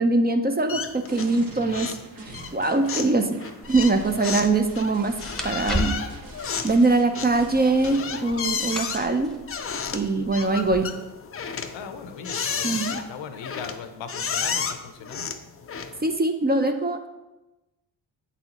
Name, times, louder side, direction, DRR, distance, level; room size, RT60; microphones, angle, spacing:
voice 1, 0.0-1.9 2.3-3.4 3.7-5.2 5.4-5.9 6.6-9.3 9.9-10.9 12.6-13.0 16.0-17.1, right 3 dB, 20° right, 6 dB, 0.5 m, -22 dB
sound 1, 0.7-1.4 1.7-2.1 2.3-16.1, left 6 dB, 30° left, 0.5 m, -32 dB
sound 2, 1.1-8.0, right 2 dB, 45° right, 1.2 m, -44 dB
sound 3, 3.6-10.8, left 1 dB, ahead, 1.0 m, -36 dB
voice 2, 11.7-15.3, left 6 dB, 65° left, 9 dB, 0.7 m, -39 dB
7.9 x 4.0 x 2.9 m, 1.0 s
supercardioid pair, 55°, 48 cm